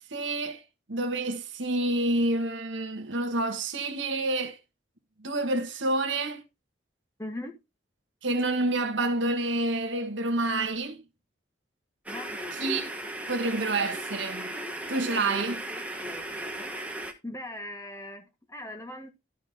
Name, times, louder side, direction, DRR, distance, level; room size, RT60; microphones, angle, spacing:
voice 1, 0.1-0.6 0.9-4.6 5.2-6.4 8.2-11.0 12.5-12.9 13.3-14.6 14.9-15.6, right 2 dB, 80° right, 1.6 m, -28 dB
voice 2, 7.2-7.6 12.1-12.3 17.2-19.1, left 1 dB, 15° left, 1.5 m, -39 dB
sound 1, 12.1-17.1, right 1 dB, 5° right, 1.2 m, -36 dB
13.5 x 5.1 x 3.6 m
head